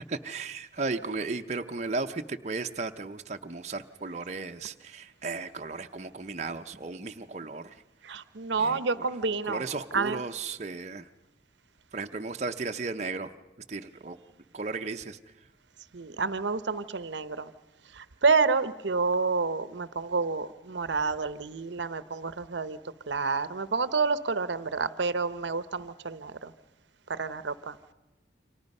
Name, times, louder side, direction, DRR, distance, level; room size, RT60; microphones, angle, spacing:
voice 1, 0.1-7.8 8.6-9.1 9.5-11.1 11.9-13.3 13.7-14.2 14.5-15.2, right 3 dB, 40° right, 5 dB, 0.7 m, -35 dB
voice 2, 8.0-9.6 9.9-10.2 15.9-17.5 17.9-22.8 23.1-26.5 27.1-27.8, right 4 dB, 75° right, 14 dB, 0.8 m, -29 dB
29.0 x 25.0 x 5.4 m, 1.1 s
head